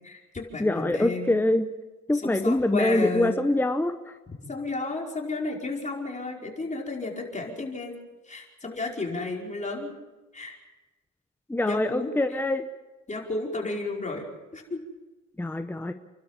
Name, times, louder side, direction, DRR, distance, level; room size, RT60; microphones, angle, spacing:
voice 1, 0.0-1.4 2.1-3.4 4.4-7.9 8.2-10.0 10.3-10.5 11.6-12.4 13.1-14.8, left 3 dB, 25° left, -1 dB, 5.0 m, -33 dB
voice 2, 0.6-1.7 2.1-4.0 11.5-12.7 15.4-15.9, left 1 dB, 5° left, 7 dB, 1.0 m, -24 dB
30.0 x 12.5 x 7.4 m, 1.1 s
cardioid pair, 90°, 30 cm